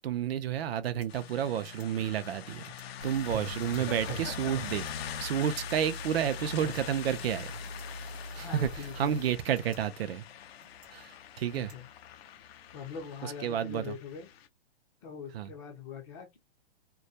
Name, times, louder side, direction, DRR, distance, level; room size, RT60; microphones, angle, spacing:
voice 1, 0.0-2.7 3.0-7.6 8.3-10.2 10.9-11.8 13.2-14.0 15.3-15.5, right 9 dB, 65° right, 0.5 m, -31 dB
sound 1, 0.6-12.6, right 2 dB, 10° right, 0.3 m, -66 dB
sound 2, 1.1-14.5, left 10 dB, 65° left, 0.5 m, -44 dB
sound 3, 3.0-9.3, right 1 dB, 85° right, 0.8 m, -41 dB
voice 2, 8.3-9.2 11.5-11.9 12.7-14.3 15.0-16.4, left 6 dB, 30° left, 0.6 m, -42 dB
2.2 x 2.1 x 2.7 m
hypercardioid pair, 155°, 33 cm